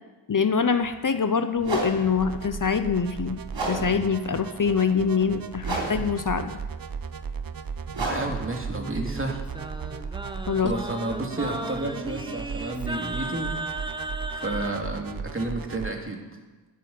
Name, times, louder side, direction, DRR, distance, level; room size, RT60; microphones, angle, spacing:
voice 1, 0.3-3.4 3.7-6.5 10.5-10.7, left 5 dB, 45° left, 9 dB, 0.9 m, -24 dB
sound 1, 0.8-0.9 1.6-10.4, right 2 dB, 80° right, 3.6 m, -35 dB
sound 2, 2.2-15.9, right 6 dB, 50° right, 0.9 m, -36 dB
voice 2, 8.0-9.5 10.6-13.5 14.3-16.2, right 2 dB, 30° right, 2 dB, 2.7 m, -31 dB
Singing, 8.7-14.8, right 1 dB, 10° right, 1.2 m, -35 dB
13.5 x 6.3 x 9.4 m, 1.2 s
cardioid pair, 40°, 45 cm